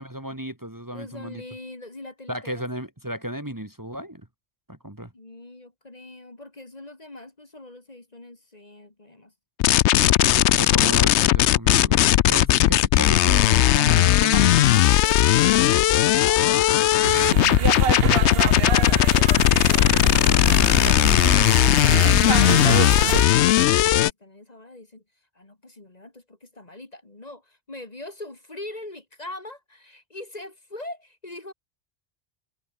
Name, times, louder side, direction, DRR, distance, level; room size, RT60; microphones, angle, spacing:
voice 1, 0.0-1.4 2.3-4.3 4.7-5.1 10.2-14.8, equal, 15° right, 2.2 m, -34 dB
voice 2, 0.9-2.7 5.1-9.3 13.2-14.3 14.7-17.6 22.5-25.0 25.3-31.5, left 2 dB, 35° left, 2.4 m, -42 dB
sound 1, 9.6-24.1, left 13 dB, 80° left, 0.9 m, -18 dB
sound 2, 17.0-23.2, right 7 dB, 60° right, 1.3 m, -26 dB
omnidirectional pair, 1.1 m